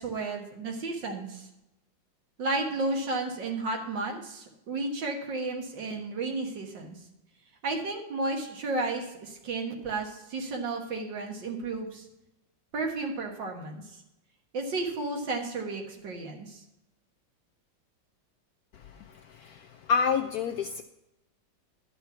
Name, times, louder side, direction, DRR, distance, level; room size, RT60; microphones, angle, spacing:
voice 1, 0.0-1.5 2.4-7.0 7.6-12.0 12.7-13.8 14.5-16.6, right 3 dB, 70° right, 3 dB, 2.2 m, -33 dB
voice 2, 18.7-20.8, left 6 dB, 70° left, 6 dB, 0.9 m, -29 dB
11.5 x 5.6 x 5.6 m, 0.89 s
omnidirectional pair, 2.1 m